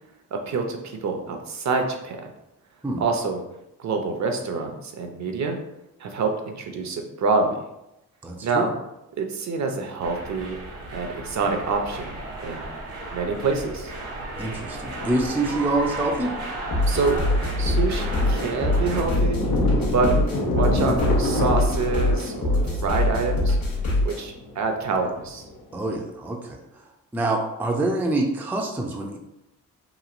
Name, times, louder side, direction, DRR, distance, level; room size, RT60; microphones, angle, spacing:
voice 1, 0.3-2.2 3.0-3.4 3.8-5.6 6.0-7.6 8.4-8.7 9.2-10.6 10.9-12.7 13.1-13.9 16.9-17.2 17.6-19.4 19.9-20.1 20.5-23.6 24.0-25.4, right 4 dB, 50° right, 4 dB, 0.6 m, -26 dB
voice 2, 8.2-8.7 14.4-16.3 25.7-26.8 27.1-29.2, right 2 dB, 5° right, 0 dB, 0.4 m, -26 dB
Thunder, 10.0-10.1 11.4-12.2 12.5-12.6 13.0-13.3 13.7-26.1, left 1 dB, 75° left, 0.6 m, -30 dB
sound 1, 10.0-19.0, right 2 dB, 85° right, 0.8 m, -35 dB
sound 2, 16.7-24.2, left 1 dB, 50° left, 1.1 m, -23 dB
3.0 x 2.5 x 2.4 m, 0.88 s
cardioid pair, 65°, 36 cm